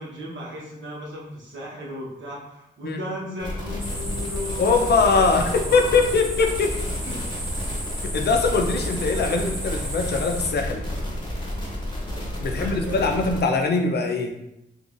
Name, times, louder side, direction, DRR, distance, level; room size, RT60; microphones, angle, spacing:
voice 1, 0.0-6.0 7.0-7.2 9.1-9.4 12.4-13.3, left 1 dB, 80° right, -4 dB, 1.0 m, -36 dB
sound 1, 3.4-13.4, left 1 dB, 25° left, 0.9 m, -31 dB
sound 2, 3.8-10.5, equal, 15° right, 1.0 m, -34 dB
voice 2, 4.6-6.8 8.1-10.8 12.4-14.3, left 4 dB, 60° left, 4 dB, 0.5 m, -22 dB
3.9 x 2.4 x 2.5 m, 0.85 s
cardioid pair, 85°, 19 cm